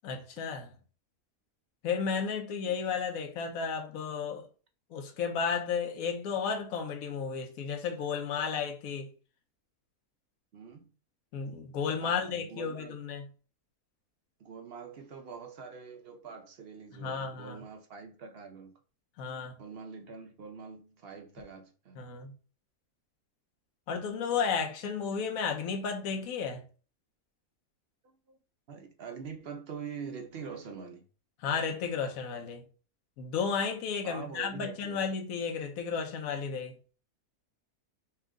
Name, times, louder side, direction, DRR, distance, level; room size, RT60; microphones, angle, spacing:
voice 1, 0.0-0.7 1.8-4.5 4.9-9.1 11.3-13.3 16.9-17.6 19.2-19.6 21.9-22.3 23.9-26.6 31.4-32.6 33.2-36.7, left 6 dB, 65° left, 1.2 m, -33 dB
voice 2, 10.5-10.9 12.0-13.0 14.4-18.8 19.6-22.0 28.0-28.4 28.7-31.1 34.0-35.0, right 6 dB, 65° right, 0.6 m, -44 dB
4.5 x 2.4 x 3.6 m
omnidirectional pair, 1.6 m